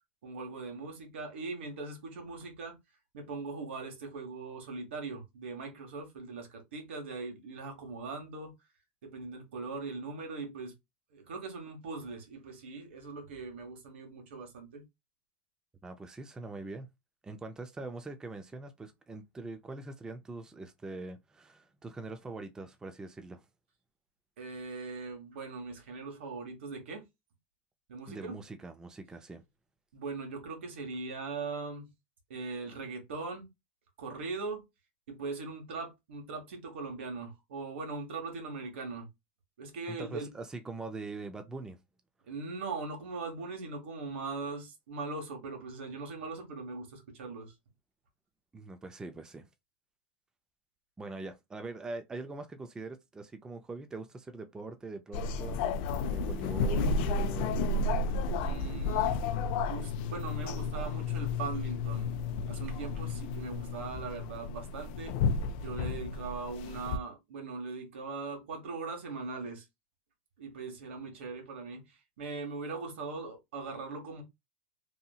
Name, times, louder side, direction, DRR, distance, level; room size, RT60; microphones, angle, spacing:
voice 1, 0.2-2.8 3.1-8.5 9.0-10.7 11.1-14.8 24.4-27.0 27.9-28.4 29.9-31.9 32.3-33.4 34.0-34.6 35.1-39.1 39.6-40.3 42.3-47.5 58.4-59.2 59.7-62.1 62.5-65.1 65.6-69.6 70.4-74.2, right 4 dB, 80° right, 1.2 m, -40 dB
voice 2, 15.8-16.9 17.2-23.4 28.1-29.4 39.9-41.8 48.5-49.5 51.0-55.6 56.1-57.6, right 3 dB, 10° right, 0.4 m, -43 dB
sound 1, 55.1-67.0, left 4 dB, 60° left, 0.4 m, -32 dB
2.8 x 2.6 x 2.3 m
supercardioid pair, 125°, 6 cm